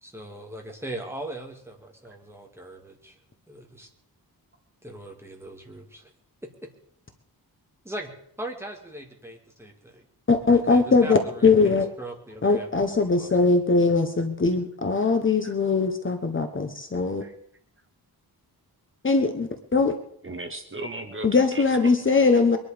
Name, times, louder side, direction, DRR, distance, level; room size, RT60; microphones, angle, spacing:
voice 1, 0.0-3.2 3.5-3.9 4.8-6.1 7.8-8.1 8.4-10.1 10.7-13.5, right 1 dB, 5° right, 0 dB, 2.4 m, -39 dB
voice 2, 10.3-11.9 12.4-17.2 19.0-19.9 21.2-22.6, left 4 dB, 30° left, 6 dB, 1.1 m, -21 dB
voice 3, 20.2-21.9, right 2 dB, 30° right, 6 dB, 1.4 m, -37 dB
23.0 x 11.0 x 5.1 m, 0.70 s
wide cardioid pair, 180°, 38 cm